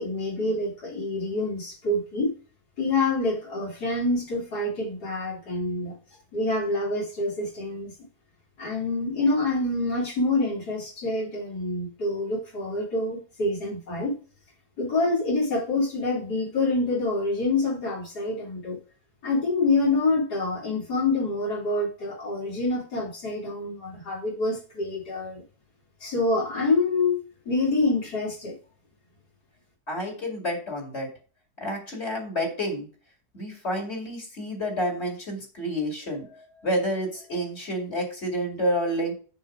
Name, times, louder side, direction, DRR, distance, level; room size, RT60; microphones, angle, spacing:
voice 1, 0.0-2.3 2.8-5.9 6.3-7.9 8.6-14.2 14.8-18.8 19.2-25.4 26.0-28.6, left 2 dB, 85° left, -5 dB, 3.4 m, -26 dB
voice 2, 29.9-31.1 31.6-32.9 33.3-39.1, equal, 40° left, 2 dB, 2.7 m, -29 dB
6.7 x 6.3 x 4.9 m, 0.37 s
omnidirectional pair, 1.7 m